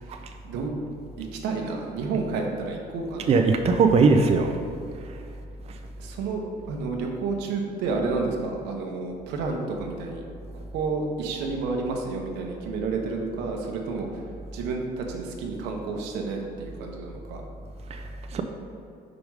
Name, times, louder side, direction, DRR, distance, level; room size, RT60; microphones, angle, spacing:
voice 1, 0.0-0.7 1.2-3.3 6.0-10.2 10.5-14.2 14.5-17.4, right 4 dB, 90° right, 1 dB, 1.0 m, -30 dB
voice 2, 3.3-4.5 17.9-18.0 18.3-18.4, right 4 dB, 40° right, 4 dB, 0.5 m, -19 dB
5.2 x 4.9 x 4.8 m, 2.5 s
cardioid pair, 110°, 17 cm